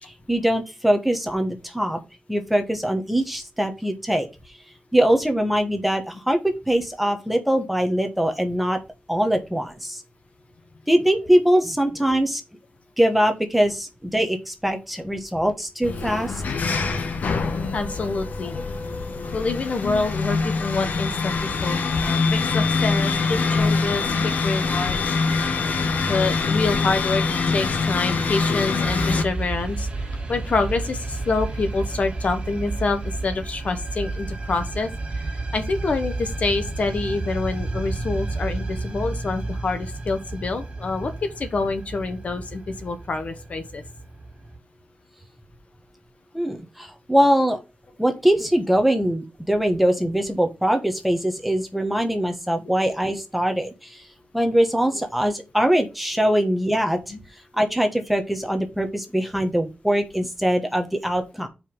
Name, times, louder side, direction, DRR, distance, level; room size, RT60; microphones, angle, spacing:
voice 1, 0.1-2.0 2.3-4.3 4.9-8.8 9.1-10.0 10.9-12.4 13.0-16.4 46.3-47.6 48.0-54.0 54.3-57.0 57.5-61.5, equal, 5° right, 1.2 m, -22 dB
sound 1, 15.8-29.2, left 4 dB, 70° left, 1.1 m, -24 dB
voice 2, 17.7-18.6 19.2-25.1 26.0-29.9 30.3-35.3 35.5-43.8 57.1-57.2, left 3 dB, 50° left, 1.2 m, -27 dB
sound 2, 28.8-44.6, right 2 dB, 35° right, 2.0 m, -31 dB
5.5 x 4.9 x 5.4 m
wide cardioid pair, 145°, 3 cm